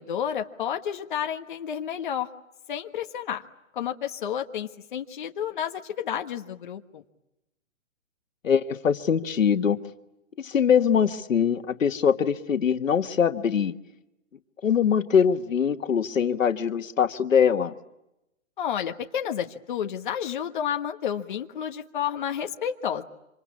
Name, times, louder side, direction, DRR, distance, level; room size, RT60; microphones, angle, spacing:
voice 1, 0.0-2.3 2.7-3.4 3.7-7.0 18.6-23.0, left 9 dB, 40° left, 5 dB, 1.4 m, -31 dB
voice 2, 8.4-9.8 10.4-13.7 14.6-17.7, left 7 dB, 85° left, 9 dB, 1.6 m, -22 dB
26.5 x 26.5 x 8.5 m, 0.90 s
hypercardioid pair, 170°, 38 cm